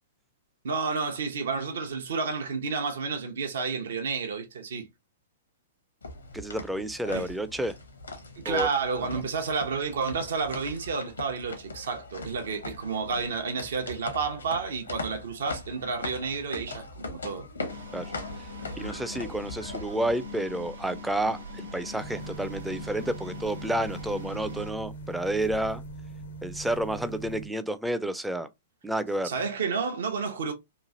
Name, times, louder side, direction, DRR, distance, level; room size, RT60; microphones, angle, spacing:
voice 1, 0.6-4.9 7.1-7.3 8.4-17.5 18.6-19.0 29.2-30.5, right 5 dB, 65° right, 0.6 m, -31 dB
sound 1, 6.0-20.1, left 2 dB, 80° left, 0.8 m, -40 dB
voice 2, 6.3-7.8 8.5-8.7 17.9-18.1 18.8-25.8 26.4-28.5 28.8-29.3, right 1 dB, 5° right, 0.4 m, -30 dB
sound 2, 17.7-24.7, left 2 dB, 80° right, 1.1 m, -41 dB
sound 3, 22.0-27.5, right 2 dB, 65° left, 0.5 m, -41 dB
3.0 x 2.4 x 2.6 m
figure-of-eight pair, 110°, 0 cm